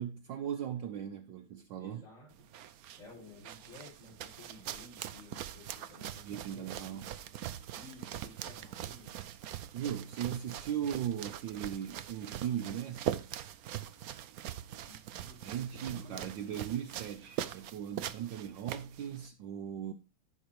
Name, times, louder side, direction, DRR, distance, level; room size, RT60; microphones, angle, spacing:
voice 1, 0.0-2.0 6.2-7.2 9.7-13.2 15.4-19.9, right 9 dB, 65° right, 1.4 m, -38 dB
voice 2, 1.8-2.5 3.0-7.0 7.7-9.2 14.8-16.3, left 2 dB, 35° left, 5.8 m, -54 dB
sound 1, 2.3-19.3, right 11 dB, 90° right, 0.7 m, -42 dB
14.5 x 6.0 x 3.0 m
omnidirectional pair, 2.3 m